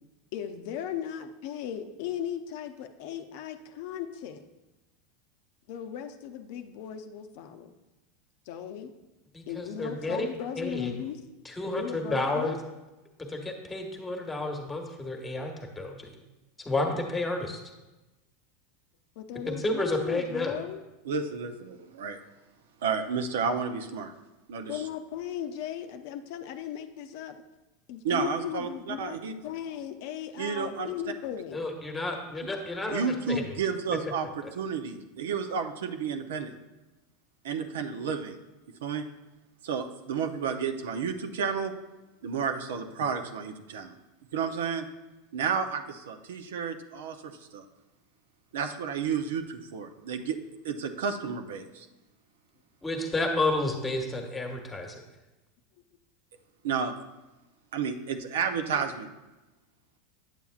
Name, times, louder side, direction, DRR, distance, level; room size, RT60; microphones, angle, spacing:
voice 1, 0.3-4.4 5.7-7.7 8.5-8.9 9.5-11.2 11.6-12.6 19.2-20.8 24.7-27.4 27.9-29.1 29.4-31.6, left 9 dB, 65° left, 7 dB, 0.6 m, -37 dB
voice 2, 9.3-10.3 10.6-10.9 11.4-12.6 13.3-16.1 16.6-17.6 19.5-20.5 31.5-33.4 52.8-55.0, left 2 dB, 15° left, 3 dB, 1.2 m, -31 dB
voice 3, 21.0-22.2 22.8-24.1 24.5-24.8 28.0-29.3 30.4-30.9 32.9-34.3 34.5-36.5 37.4-38.4 38.7-39.0 39.6-41.7 42.2-43.9 44.3-44.9 45.3-47.6 48.5-50.4 50.6-51.9 56.6-56.9 57.7-59.1, right 6 dB, 85° right, 7 dB, 0.6 m, -31 dB
9.0 x 6.9 x 2.4 m, 1.1 s
supercardioid pair, 115°, 0 cm